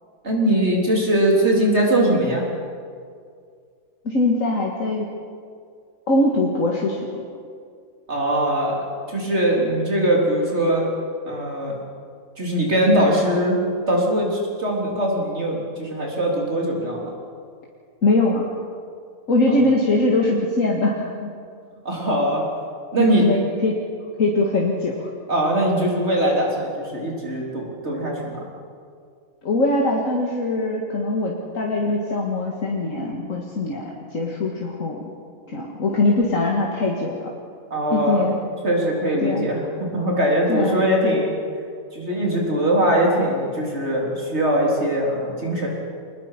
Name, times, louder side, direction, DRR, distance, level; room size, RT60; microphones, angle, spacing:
voice 1, 0.2-2.5 8.1-8.8 9.1-10.9 11.3-11.7 12.4-17.1 19.5-19.6 21.8-22.5 22.9-23.3 25.3-28.4 37.7-38.3 38.6-41.3 41.9-45.7, right 1 dB, 50° right, -2 dB, 4.3 m, -21 dB
voice 2, 4.0-5.1 6.1-7.2 18.0-18.5 19.3-21.3 23.0-23.8 24.2-25.1 29.4-33.8 34.1-35.0 35.5-37.3 37.9-38.4 39.2-39.5 40.5-40.8, left 2 dB, 70° left, -1 dB, 2.2 m, -22 dB
24.0 x 20.0 x 5.9 m, 2.2 s
omnidirectional pair, 1.4 m